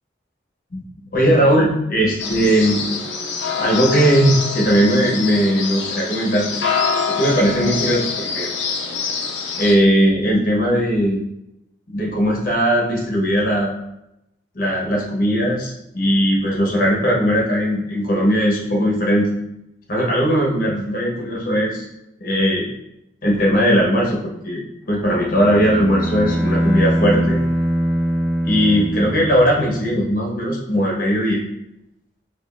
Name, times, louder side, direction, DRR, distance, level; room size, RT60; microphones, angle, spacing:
voice 1, 1.1-2.9 3.6-6.5 7.1-8.5 9.6-11.2 11.9-13.7 14.5-19.3 19.9-21.9 22.2-22.7 23.2-24.2 24.4-24.6 24.9-27.4 28.4-31.4, equal, 50° left, -3 dB, 1.1 m, -18 dB
sound 1, 2.2-9.7, left 5 dB, 85° left, 0.6 m, -25 dB
Bowed string instrument, 25.0-29.8, equal, 15° right, 0.9 m, -22 dB
5.2 x 2.6 x 2.6 m, 0.85 s
head